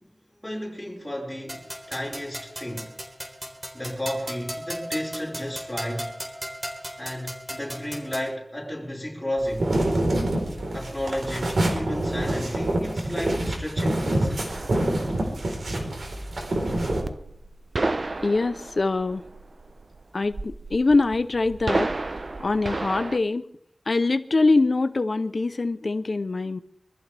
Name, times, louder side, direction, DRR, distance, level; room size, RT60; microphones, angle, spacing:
voice 1, 0.4-2.9 3.7-6.1 7.0-9.7 10.7-14.5, equal, 5° left, 6.0 m, -32 dB
sound 1, 1.5-8.3, equal, 25° right, 4.1 m, -37 dB
sound 2, 9.4-17.0, right 1 dB, 80° right, 4.2 m, -26 dB
sound 3, 14.5-23.2, right 2 dB, 55° right, 0.8 m, -32 dB
voice 2, 18.2-19.2 20.1-23.4 23.9-26.6, left 3 dB, 60° left, 0.7 m, -24 dB
24.5 x 14.0 x 3.5 m
wide cardioid pair, 60°, 0 cm